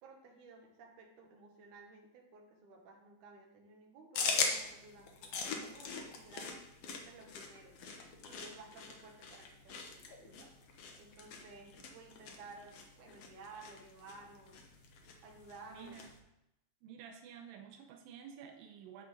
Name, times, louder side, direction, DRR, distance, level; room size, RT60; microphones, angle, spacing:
voice 1, 0.0-6.6 6.9-7.8 8.2-10.5 11.0-14.6 15.2-16.0, right 3 dB, 65° right, 1 dB, 2.7 m, -55 dB
sound 1, 4.1-16.2, left 5 dB, 70° left, 1.4 m, -41 dB
voice 2, 15.7-16.1 16.8-19.1, right 7 dB, 90° right, 3 dB, 2.5 m, -51 dB
9.6 x 3.9 x 6.5 m, 0.89 s
omnidirectional pair, 4.0 m